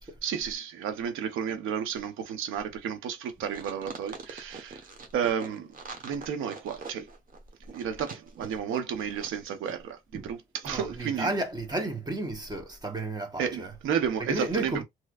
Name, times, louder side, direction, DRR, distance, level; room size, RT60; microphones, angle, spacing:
voice 1, 0.2-4.8 5.1-5.7 6.0-7.1 7.7-11.3 13.4-14.8, right 8 dB, 90° right, 0.9 m, -32 dB
sound 1, 3.5-9.4 9.6-9.7, right 4 dB, 45° right, 1.2 m, -43 dB
voice 2, 10.6-13.8 14.2-14.8, right 2 dB, 20° right, 1.2 m, -32 dB
3.1 x 3.1 x 2.4 m
cardioid pair, 90°, 20 cm